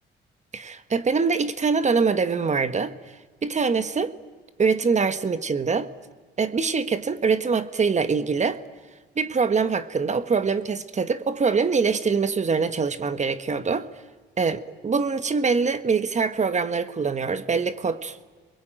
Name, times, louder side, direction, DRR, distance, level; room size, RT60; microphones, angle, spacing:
voice 1, 0.5-2.9 3.4-4.1 4.6-5.9 6.4-8.6 9.2-13.9 14.4-18.2, right 5 dB, 35° right, 1.4 m, -24 dB
26.5 x 22.0 x 9.1 m
cardioid pair, 90°, 20 cm